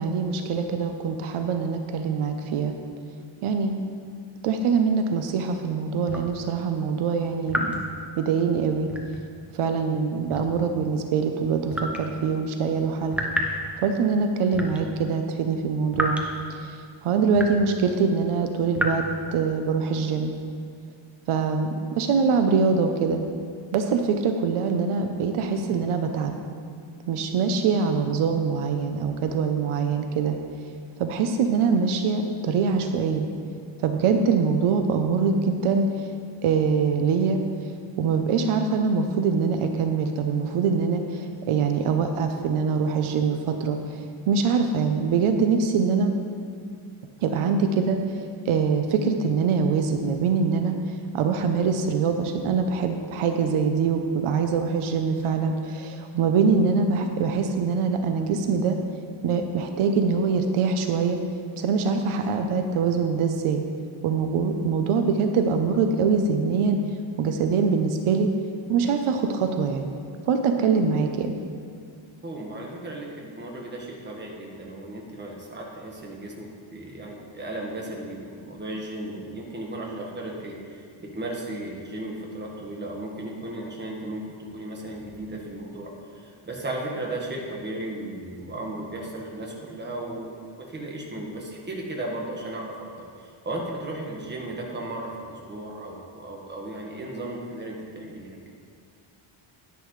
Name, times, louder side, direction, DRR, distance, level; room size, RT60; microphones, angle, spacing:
voice 1, 0.0-2.7 3.4-3.7 4.4-7.7 8.2-8.9 9.5-13.2 13.8-16.2 16.6-16.7 17.0-19.0 19.3-20.3 21.3-23.2 23.7-26.3 27.1-30.4 31.0-33.2 33.8-35.8 36.4-37.4 38.0-43.8 44.3-46.1 47.2-48.0 48.5-50.8 51.1-58.8 59.2-61.2 61.6-63.6 64.0-66.8 67.2-68.3 68.7-69.9 70.3-71.3, right 5 dB, 80° right, 6 dB, 0.8 m, -23 dB
sound 1, 6.1-6.3 7.5-7.9 8.9-9.3 10.3-10.7 11.7-12.0 13.1-13.6 14.5-14.8 15.9-16.2 17.3-17.7 18.7-18.9, equal, 5° right, 0.7 m, -29 dB
voice 2, 72.2-85.9 86.1-90.3 90.7-98.4, right 1 dB, 20° right, -1 dB, 1.4 m, -35 dB
10.0 x 10.0 x 3.2 m, 2.2 s
cardioid pair, 150°, 50 cm